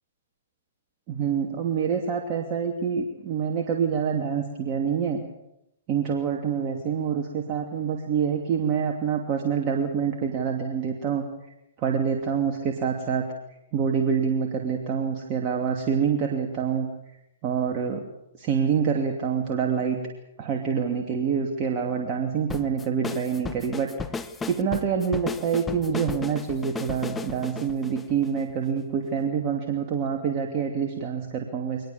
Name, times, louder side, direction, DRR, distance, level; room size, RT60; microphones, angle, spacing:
voice 1, 1.1-5.2 5.9-11.2 11.8-13.3 13.7-16.9 17.4-18.0 18.4-20.0 20.4-23.9 24.5-31.9, right 7 dB, 35° right, 1 dB, 2.7 m, -26 dB
sound 1, 22.5-28.8, left 4 dB, 10° left, 1.1 m, -35 dB
23.0 x 20.0 x 7.2 m, 0.85 s
hypercardioid pair, 125°, 0 cm